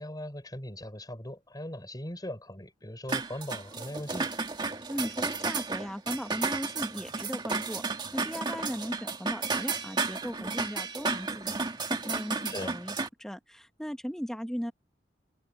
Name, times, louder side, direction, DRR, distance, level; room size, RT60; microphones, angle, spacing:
voice 1, 0.0-4.3 12.5-12.7, left 1 dB, 20° left, 5.6 m, -39 dB
sound 1, 3.1-13.1, right 4 dB, 25° right, 1.9 m, -33 dB
voice 2, 4.9-14.7, equal, 5° left, 1.4 m, -37 dB
head